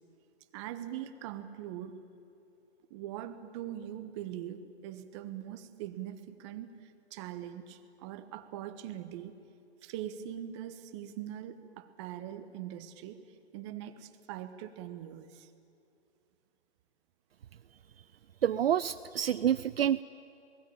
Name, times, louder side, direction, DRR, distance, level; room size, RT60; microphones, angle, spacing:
voice 1, 0.5-2.0 2.9-9.3 9.8-13.2 13.5-15.5, right 11 dB, 25° right, 10 dB, 1.2 m, -42 dB
voice 2, 18.4-20.0, right 10 dB, 60° right, 14 dB, 0.6 m, -28 dB
27.5 x 19.0 x 8.7 m, 2.7 s
hypercardioid pair, 140°, 34 cm